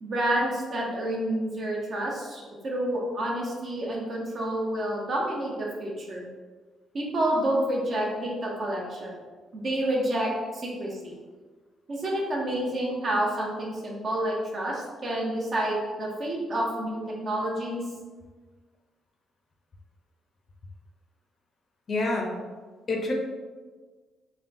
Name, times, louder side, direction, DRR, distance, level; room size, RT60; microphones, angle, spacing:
voice 1, 0.0-6.3 6.9-9.2 9.5-11.1 11.9-17.8, right 1 dB, 45° right, -3 dB, 0.8 m, -29 dB
voice 2, 21.9-22.3 22.9-23.1, left 2 dB, 45° left, 1 dB, 0.5 m, -27 dB
3.6 x 2.2 x 2.6 m, 1.4 s
cardioid pair, 90°, 0 cm